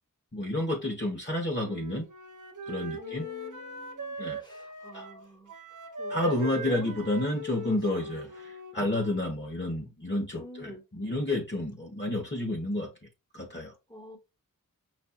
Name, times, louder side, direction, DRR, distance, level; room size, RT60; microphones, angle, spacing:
voice 1, 0.3-2.1 2.7-3.3 4.2-4.4 4.9-5.1 6.1-12.9 13.3-13.7, left 1 dB, 30° left, 1.2 m, -30 dB
Wind instrument woodwind instrument, 1.6-9.4, right 1 dB, 60° right, 0.8 m, -40 dB
voice 2, 3.0-4.2 4.4-5.5 6.0-7.0 7.6-8.1 10.4-10.8 13.9-14.2, left 1 dB, 10° left, 1.4 m, -45 dB
6.2 x 2.5 x 2.4 m
wide cardioid pair, 45°, 35 cm